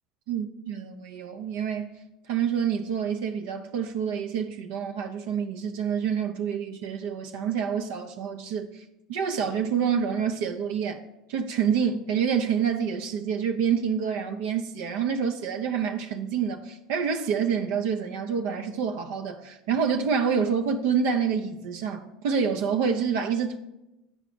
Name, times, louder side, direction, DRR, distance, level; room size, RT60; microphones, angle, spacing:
voice 1, 0.3-1.9 2.3-11.0 11.3-23.6, right 7 dB, 70° right, 0.5 m, -27 dB
8.5 x 4.9 x 4.9 m
hypercardioid pair, 75°, 0 cm